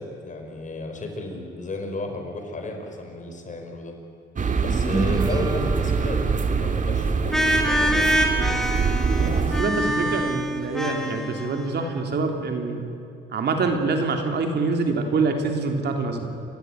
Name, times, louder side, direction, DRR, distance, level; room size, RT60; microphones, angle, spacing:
voice 1, 0.0-3.9 4.6-6.2 6.6-8.1, left 2 dB, 40° left, 3 dB, 5.1 m, -34 dB
sound 1, 4.4-9.6, right 5 dB, 40° right, 1.9 m, -24 dB
sound 2, 4.9-8.5, right 3 dB, 20° right, 0.8 m, -30 dB
sound 3, 7.3-12.0, equal, ahead, 3.2 m, -25 dB
voice 2, 9.2-12.8 13.3-16.3, right 4 dB, 60° right, 4 dB, 3.2 m, -25 dB
29.0 x 15.0 x 9.3 m, 2.7 s
cardioid pair, 90°, 20 cm